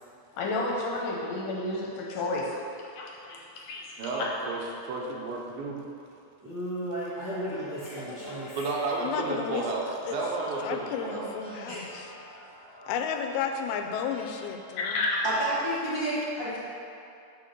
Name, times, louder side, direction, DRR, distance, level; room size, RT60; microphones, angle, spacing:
voice 1, 0.3-4.3 14.8-15.2, left 2 dB, 75° left, -2 dB, 2.1 m, -31 dB
voice 2, 4.0-5.8 8.6-9.8 10.1-11.6, right 3 dB, 85° right, -1 dB, 2.7 m, -32 dB
voice 3, 6.4-8.5, right 1 dB, 65° right, -11 dB, 1.1 m, -34 dB
voice 4, 7.8-8.7 11.4-12.9 15.2-16.6, right 1 dB, 20° left, -11 dB, 0.6 m, -33 dB
voice 5, 9.0-9.7 10.0-10.2 10.6-12.1 12.9-15.0, left 7 dB, 90° left, 5 dB, 2.5 m, -32 dB
6.1 x 5.8 x 6.3 m, 2.6 s
omnidirectional pair, 4.3 m